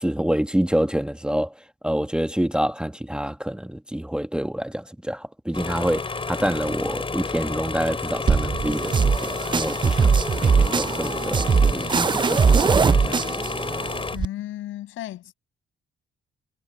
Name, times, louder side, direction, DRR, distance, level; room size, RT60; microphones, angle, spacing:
voice 1, 0.0-1.5 1.8-10.2 10.4-13.2, equal, 5° right, 1.2 m, -27 dB
sound 1, 5.5-14.2, left 4 dB, 25° left, 5.1 m, -30 dB
sound 2, 8.3-14.3, right 5 dB, 25° right, 0.5 m, -21 dB
voice 2, 14.1-15.3, left 13 dB, 85° left, 7.9 m, -34 dB
cardioid pair, 90°, 20 cm